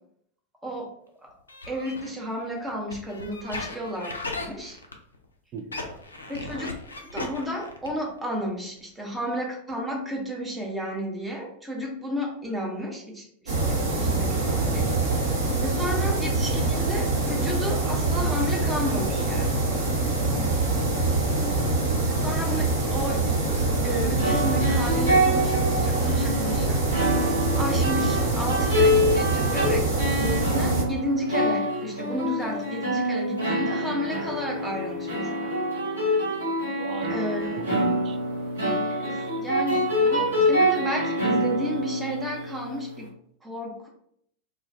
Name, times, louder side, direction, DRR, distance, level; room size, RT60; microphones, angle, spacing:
voice 1, 0.6-0.9 1.2-1.3 1.7-4.1 4.4-4.8 6.3-6.7 7.0-14.9 15.6-19.6 22.0-23.4 23.8-26.8 27.5-35.5 37.1-37.6 39.0-43.1 43.4-43.9, equal, 10° right, -1 dB, 0.7 m, -32 dB
sound 1, 1.5-5.2 5.6-8.1 8.4-8.5 8.8-8.9 9.1-9.2, left 2 dB, 75° left, 0.3 m, -36 dB
voice 2, 5.5-5.8 15.7-15.8 21.4-22.0 36.8-37.3 37.7-38.2, right 5 dB, 35° right, 6 dB, 0.3 m, -37 dB
sound 2, 13.5-30.8, right 2 dB, 65° right, 0.8 m, -25 dB
sound 3, 23.9-42.8, equal, 80° right, 1.0 m, -26 dB
2.3 x 2.1 x 2.5 m, 0.67 s
figure-of-eight pair, 90°, 0 cm